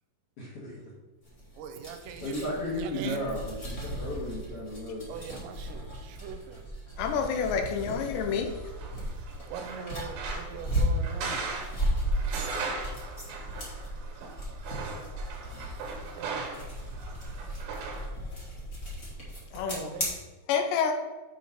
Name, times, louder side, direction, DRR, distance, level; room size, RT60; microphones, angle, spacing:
voice 1, 0.4-0.7 2.2-5.1, left 1 dB, 50° left, -6 dB, 1.7 m, -34 dB
sound 1, 1.2-20.1, equal, 35° left, 1.2 m, -36 dB
voice 2, 1.6-3.3 5.1-6.6 9.5-11.4 15.9-16.5 19.6-20.1, right 7 dB, 85° right, 7 dB, 2.8 m, -41 dB
voice 3, 7.0-8.5 19.5-19.9 20.5-20.9, left 6 dB, 85° left, 4 dB, 3.0 m, -28 dB
sound 2, 7.0-18.1, right 4 dB, 65° right, 2.7 m, -39 dB
7.9 x 4.2 x 5.8 m, 1.2 s
omnidirectional pair, 5.0 m